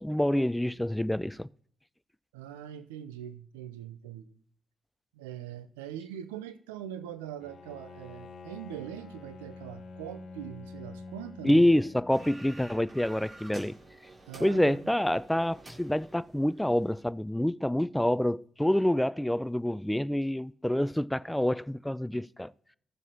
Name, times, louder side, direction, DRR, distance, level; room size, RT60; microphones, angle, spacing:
voice 1, 0.0-1.5 11.4-13.8 14.4-22.5, left 1 dB, 5° left, 0.3 m, -27 dB
voice 2, 2.3-4.3 5.1-11.6 14.3-14.8, right 10 dB, 85° right, 0.5 m, -42 dB
Bowed string instrument, 7.4-12.8, left 3 dB, 60° left, 0.8 m, -47 dB
sound 1, 12.1-17.0, right 2 dB, 45° right, 2.7 m, -50 dB
16.5 x 7.3 x 2.8 m
hypercardioid pair, 40°, 0 cm